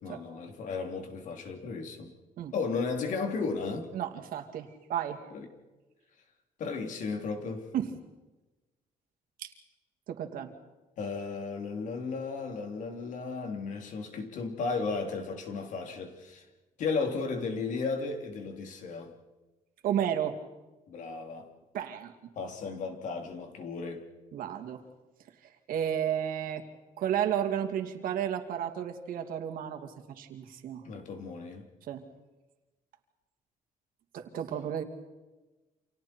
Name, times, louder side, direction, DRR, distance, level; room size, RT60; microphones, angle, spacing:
voice 1, 0.0-2.1 2.5-3.9 5.3-5.5 6.6-7.7 11.0-16.4 16.8-19.1 20.9-21.5 22.3-24.1 30.8-31.7, left 4 dB, 60° left, 4 dB, 3.3 m, -34 dB
voice 2, 3.9-5.2 7.7-7.9 9.4-9.5 10.1-10.5 19.8-20.4 21.7-22.1 24.3-24.8 25.7-26.6 27.0-30.8 31.9-32.0 34.1-34.8, right 9 dB, 75° right, 5 dB, 2.7 m, -32 dB
29.5 x 27.5 x 4.5 m, 1.1 s
cardioid pair, 175°, 15 cm